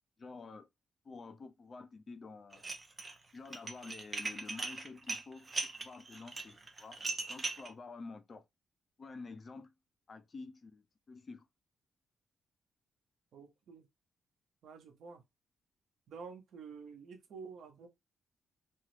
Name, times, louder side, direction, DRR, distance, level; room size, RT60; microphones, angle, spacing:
voice 1, 0.2-0.7 1.0-2.6 3.3-7.0 7.3-8.4 9.0-9.7 10.1-11.5, left 4 dB, 40° left, 0.4 m, -49 dB
Dishes pots and pans, 2.5-3.1 3.5-7.7, right 3 dB, 30° right, 0.6 m, -39 dB
voice 2, 13.3-13.9 14.6-15.2 16.1-17.9, right 5 dB, 75° right, 0.9 m, -49 dB
2.9 x 2.2 x 3.1 m
cardioid pair, 105°, 0 cm